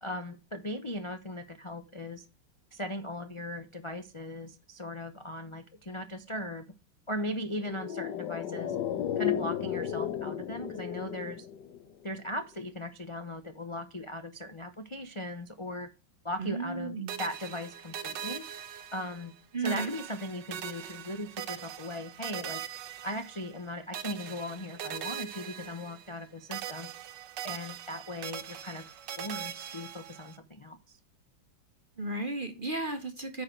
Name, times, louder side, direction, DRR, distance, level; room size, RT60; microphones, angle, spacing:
voice 1, 0.0-2.2 2.7-6.6 7.1-8.8 9.2-11.5 12.0-15.9 16.2-18.4 18.9-19.3 19.6-22.6 23.0-26.9 27.4-28.8 29.2-31.0, left 1 dB, 50° left, 7 dB, 0.3 m, -38 dB
sound 1, 7.6-12.2 12.4-12.5, left 10 dB, 65° left, 1.5 m, -34 dB
voice 2, 16.4-17.2 19.5-19.9 32.0-33.4, right 3 dB, 40° right, 7 dB, 0.8 m, -34 dB
sound 2, 17.1-19.4 19.6-23.6 23.9-26.2 26.5-30.4, right 9 dB, 65° right, 1.4 m, -41 dB
9.7 x 5.8 x 4.5 m, 0.30 s
omnidirectional pair, 2.2 m